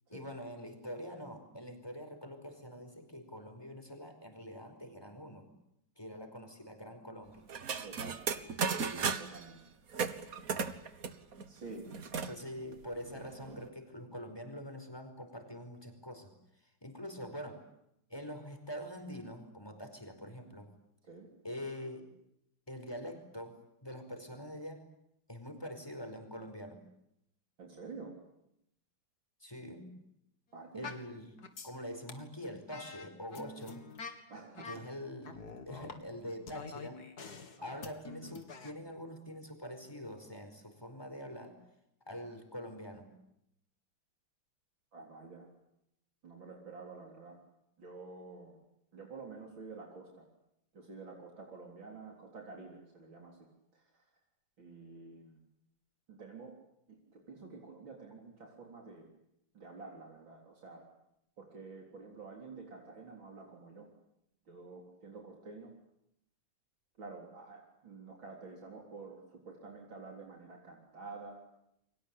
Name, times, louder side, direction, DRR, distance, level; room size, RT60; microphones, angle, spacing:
voice 1, 0.1-5.5 6.0-7.5 12.3-16.3 16.6-17.6 18.1-20.7 21.4-22.1 22.7-24.8 25.3-26.8 29.4-29.9 30.7-31.4 31.6-33.8 34.6-37.0 37.6-41.6 42.1-43.1, equal, 10° left, 5 dB, 4.9 m, -45 dB
sound 1, 7.5-9.4 9.9-12.3 12.7-12.8 13.0-13.7, right 6 dB, 50° right, 1.7 m, -36 dB
voice 2, 7.8-8.3 9.0-9.6 11.5-11.9 21.0-21.3 27.6-28.1 30.5-30.9 34.3-34.8 37.6-37.8 44.9-45.5 46.2-47.4 47.8-48.6 48.9-50.3 50.7-53.4 53.7-54.1 54.6-55.4 56.1-56.5 56.9-59.1 59.5-60.8 61.4-63.9 64.5-65.7 67.0-71.4, right 4 dB, 80° right, 0 dB, 4.5 m, -49 dB
sound 2, 30.8-31.1 31.4-31.8 32.1-32.2 32.7-34.2 34.5-34.9 35.2-36.0 36.5-38.7, left 4 dB, 55° left, 2.6 m, -46 dB
29.5 x 23.5 x 8.5 m, 0.80 s
omnidirectional pair, 2.1 m